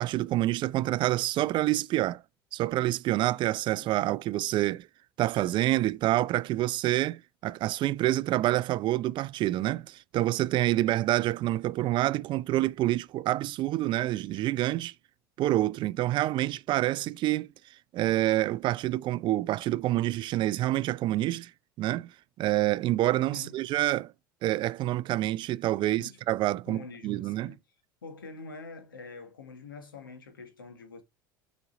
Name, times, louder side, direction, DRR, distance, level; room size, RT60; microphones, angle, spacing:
voice 1, 0.0-2.2 2.5-4.9 5.2-14.9 15.4-17.5 17.9-21.5 21.8-22.1 22.4-24.1 24.4-27.5, right 15 dB, 45° right, 0.4 m, -27 dB
voice 2, 25.8-26.2 26.6-27.6 28.0-31.0, left 4 dB, 90° left, 1.5 m, -45 dB
6.7 x 5.1 x 3.8 m
hypercardioid pair, 80°, 11 cm